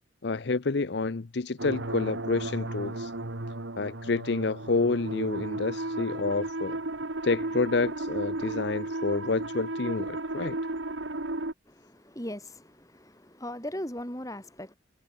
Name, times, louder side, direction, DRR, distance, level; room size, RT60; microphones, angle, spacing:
voice 1, 0.2-3.1 3.8-6.8 7.2-10.6, left 3 dB, 60° left, 0.6 m, -29 dB
sound 1, 1.6-11.5, right 2 dB, 70° right, 1.9 m, -34 dB
voice 2, 11.7-14.7, left 1 dB, 15° left, 7.2 m, -39 dB
head